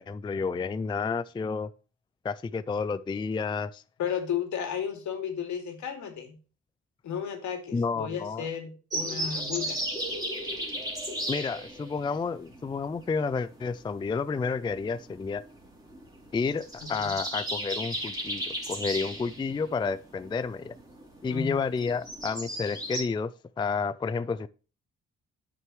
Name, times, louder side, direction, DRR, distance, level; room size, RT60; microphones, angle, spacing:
voice 1, 0.0-1.7 2.2-3.8 7.7-8.5 11.3-15.4 16.3-20.7 21.2-24.5, left 5 dB, 15° left, 0.4 m, -30 dB
voice 2, 4.0-6.4 7.0-9.8 16.8-17.1 21.3-21.6, left 7 dB, 70° left, 2.6 m, -33 dB
sound 1, 8.9-23.0, right 1 dB, 10° right, 3.0 m, -36 dB
9.2 x 6.0 x 3.2 m
cardioid pair, 90°, 30 cm